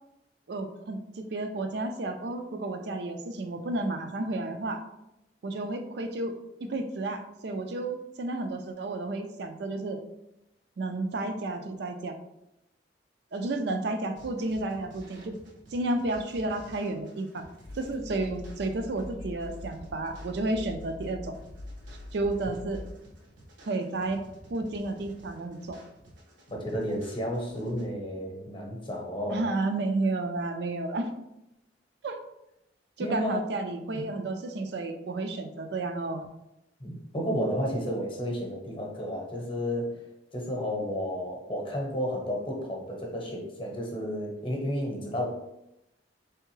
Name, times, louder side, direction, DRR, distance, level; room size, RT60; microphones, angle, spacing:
voice 1, 0.5-4.8 5.4-6.3 6.6-10.0 10.8-12.2 13.3-15.4 15.7-17.5 17.7-21.4 22.1-22.8 23.7-24.2 24.5-25.8 29.3-31.1 32.0-32.2 33.0-36.3, right 2 dB, 60° right, 6 dB, 0.4 m, -31 dB
sound 1, 14.2-27.8, right 1 dB, 85° right, 1.0 m, -53 dB
Train, 17.6-23.0, left 1 dB, 85° left, 0.5 m, -43 dB
voice 2, 26.5-29.4 33.0-33.4 33.9-34.1 36.8-40.0 40.3-45.2, equal, 30° left, 0 dB, 0.8 m, -32 dB
3.6 x 3.4 x 3.1 m, 0.87 s
head